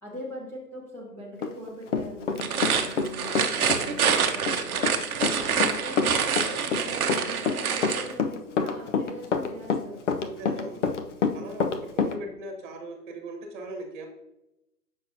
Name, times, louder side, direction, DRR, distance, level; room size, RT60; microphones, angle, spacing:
voice 1, 0.0-4.9 5.4-6.1 6.5-10.0, left 1 dB, 5° left, -5 dB, 0.9 m, -41 dB
Run, 1.4-3.1 3.4-12.1, left 5 dB, 50° left, 0.6 m, -27 dB
sound 1, 2.3-8.1, right 7 dB, 60° right, 0.8 m, -26 dB
voice 2, 10.2-10.8 11.3-11.7 11.9-14.1, right 2 dB, 30° right, 3 dB, 1.3 m, -39 dB
7.2 x 5.8 x 2.7 m, 0.90 s
hypercardioid pair, 140°, 49 cm